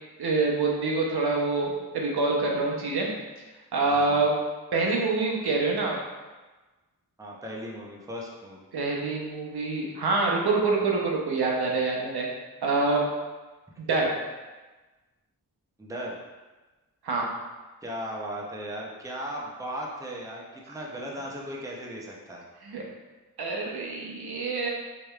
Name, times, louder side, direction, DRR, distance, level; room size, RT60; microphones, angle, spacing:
voice 1, 0.2-3.1 3.7-4.3 4.7-6.0 8.7-12.3 12.6-13.0 13.8-14.1 17.0-17.3 20.7-20.8 22.6-22.8 23.4-24.7, right 3 dB, 80° right, -1 dB, 0.8 m, -26 dB
voice 2, 3.8-4.3 7.2-8.7 15.8-16.2 17.8-22.4, equal, 10° right, -2 dB, 0.6 m, -37 dB
4.8 x 3.1 x 2.3 m, 1.2 s
wide cardioid pair, 95°, 38 cm